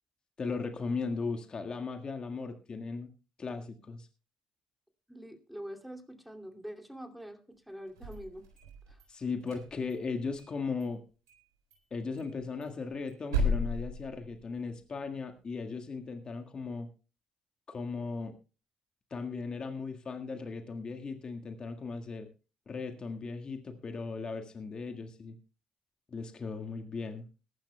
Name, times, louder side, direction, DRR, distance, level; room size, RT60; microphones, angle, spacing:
voice 1, 0.4-3.1 3.4-4.1 9.1-11.0 11.9-16.9 17.7-18.3 19.1-22.3 22.7-25.4 26.1-27.3, left 4 dB, 40° left, 5 dB, 1.7 m, -37 dB
voice 2, 5.1-8.4 8.9-9.0, equal, ahead, 4 dB, 2.6 m, -45 dB
sound 1, 7.9-9.0 9.4-10.5 10.8-10.9 11.3-11.4 11.7-11.8 12.2-14.8, left 1 dB, 90° right, 4.0 m, -35 dB
21.5 x 11.5 x 2.2 m, 0.33 s
hypercardioid pair, 50°, 2 cm